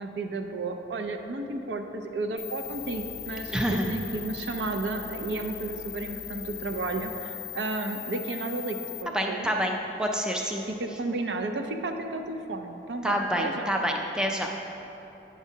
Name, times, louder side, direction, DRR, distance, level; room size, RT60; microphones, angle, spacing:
voice 1, 0.0-9.5 10.7-13.7, right 3 dB, 80° right, 5 dB, 0.5 m, -33 dB
sound 1, 2.4-9.0, left 13 dB, 70° left, 0.5 m, -39 dB
voice 2, 3.5-3.9 9.1-10.6 13.0-14.5, equal, 5° right, 1 dB, 0.3 m, -27 dB
9.0 x 6.0 x 2.7 m, 2.9 s
head